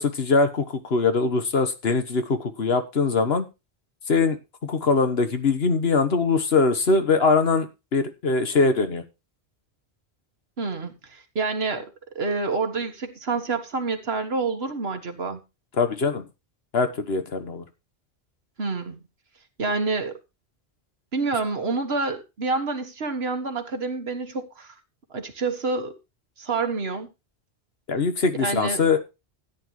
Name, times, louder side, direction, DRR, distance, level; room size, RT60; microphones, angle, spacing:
voice 1, 0.0-3.5 4.1-9.0 15.8-16.2 16.7-17.6 27.9-29.0, left 4 dB, 65° left, 9 dB, 1.5 m, -22 dB
voice 2, 10.6-11.9 12.2-15.4 18.6-19.0 19.6-20.2 21.1-24.8 25.1-25.9 26.4-27.1 28.4-28.9, right 3 dB, 65° right, 7 dB, 1.7 m, -28 dB
13.5 x 9.7 x 3.2 m, 0.26 s
omnidirectional pair, 1.1 m